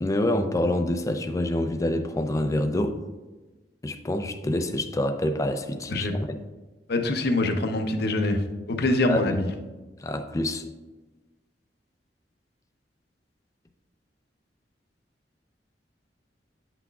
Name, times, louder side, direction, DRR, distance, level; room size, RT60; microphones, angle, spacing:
voice 1, 0.0-3.0 3.8-6.1 9.0-9.4 10.0-10.6, left 1 dB, 20° left, 7 dB, 0.4 m, -26 dB
voice 2, 6.9-8.4 8.7-9.5, left 2 dB, 60° left, 5 dB, 0.7 m, -24 dB
8.9 x 5.9 x 2.3 m, 1.2 s
head